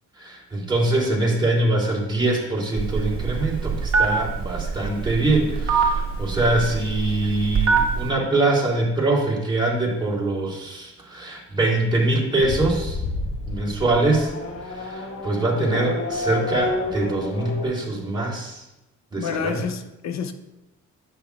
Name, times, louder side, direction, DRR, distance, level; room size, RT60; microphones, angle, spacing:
voice 1, 0.2-13.0 13.5-14.3 14.6-18.6 19.1-19.5, right 2 dB, 15° right, -3 dB, 3.1 m, -23 dB
Telephone, 2.8-8.1, right 5 dB, 45° right, 1.6 m, -24 dB
Race car auto racing / Accelerating revving vroom, 12.4-17.6, left 3 dB, 45° left, 1.3 m, -29 dB
voice 2, 19.2-20.3, left 7 dB, 60° left, 9 dB, 0.8 m, -28 dB
10.0 x 8.1 x 2.4 m, 0.97 s
cardioid pair, 90°, 30 cm